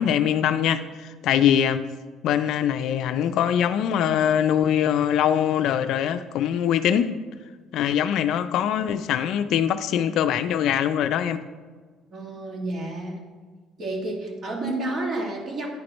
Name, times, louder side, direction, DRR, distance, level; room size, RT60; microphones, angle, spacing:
voice 1, 0.0-1.9 2.2-7.1 7.7-11.4, left 9 dB, 70° left, 0.4 m, -23 dB
voice 2, 12.1-13.2 13.8-15.7, right 2 dB, 45° right, 1.9 m, -30 dB
9.6 x 4.3 x 5.2 m
cardioid pair, 115°, 0 cm